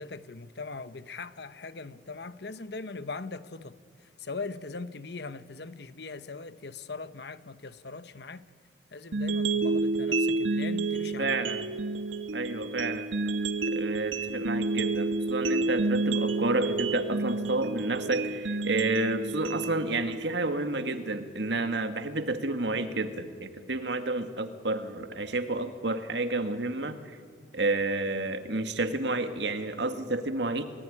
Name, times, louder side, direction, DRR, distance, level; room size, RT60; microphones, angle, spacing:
voice 1, 0.0-3.8 4.2-8.4 8.9-11.4, left 3 dB, 60° left, 1.0 m, -40 dB
sound 1, 9.1-21.1, right 3 dB, 85° right, 1.3 m, -30 dB
voice 2, 11.2-11.6 12.3-13.1 13.7-27.2 27.5-30.6, right 2 dB, 65° right, 2.0 m, -30 dB
29.5 x 18.5 x 10.0 m
head